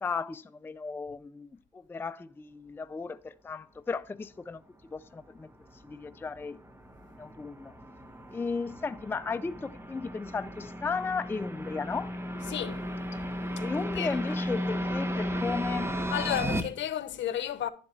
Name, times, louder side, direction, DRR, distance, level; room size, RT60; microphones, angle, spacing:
voice 1, 0.0-6.6 7.2-7.7 8.3-12.1 13.6-15.9, left 4 dB, 10° left, 0.3 m, -35 dB
sound 1, 5.1-16.6, equal, 10° right, 1.1 m, -35 dB
voice 2, 12.5-12.9 13.9-14.2 16.1-17.7, left 11 dB, 70° left, 0.9 m, -32 dB
11.0 x 7.1 x 3.1 m
cardioid pair, 90°, 20 cm